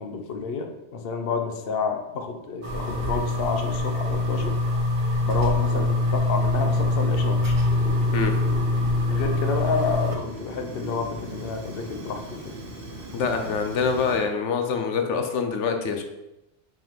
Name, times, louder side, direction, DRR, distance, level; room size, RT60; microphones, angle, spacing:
voice 1, 0.0-4.6 5.2-7.6 9.1-12.5, left 5 dB, 60° left, 5 dB, 1.0 m, -29 dB
sound 1, 2.6-10.2, left 2 dB, 30° right, 1.0 m, -24 dB
Fire, 7.6-14.3, right 1 dB, 55° right, 1.3 m, -39 dB
voice 2, 13.1-16.0, left 5 dB, 90° left, 6 dB, 1.1 m, -25 dB
6.1 x 4.8 x 5.1 m, 0.95 s
omnidirectional pair, 1.2 m